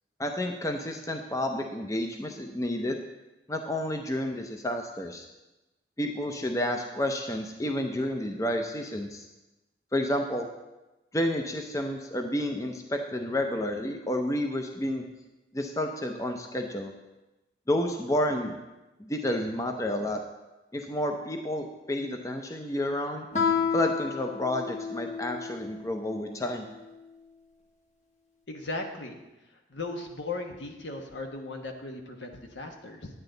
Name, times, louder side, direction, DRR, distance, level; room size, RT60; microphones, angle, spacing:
voice 1, 0.2-3.0 3.5-5.3 6.0-9.2 9.9-10.5 11.1-15.0 15.5-16.9 17.7-18.6 19.0-20.2 20.7-23.3 23.7-26.7, left 1 dB, 15° left, 4 dB, 0.6 m, -30 dB
Guitar, 23.3-25.8, left 6 dB, 40° left, 1.1 m, -30 dB
voice 2, 28.5-29.2 29.7-33.1, left 2 dB, 75° left, 3 dB, 1.2 m, -37 dB
10.0 x 8.8 x 3.9 m, 1.0 s
head